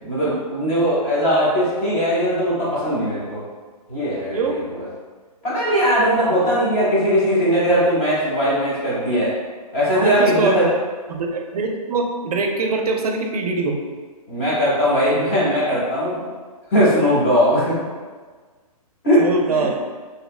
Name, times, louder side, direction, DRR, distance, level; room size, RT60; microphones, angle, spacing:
voice 1, 0.0-3.4 3.9-4.8 5.4-9.3 9.7-10.7 14.3-16.2 16.7-17.8 19.0-19.7, equal, 20° left, -8 dB, 0.6 m, -19 dB
voice 2, 9.9-10.6 11.1-13.8 19.2-19.7, right 3 dB, 75° right, 3 dB, 0.4 m, -23 dB
2.6 x 2.1 x 2.3 m, 1.4 s
hypercardioid pair, 165°, 20 cm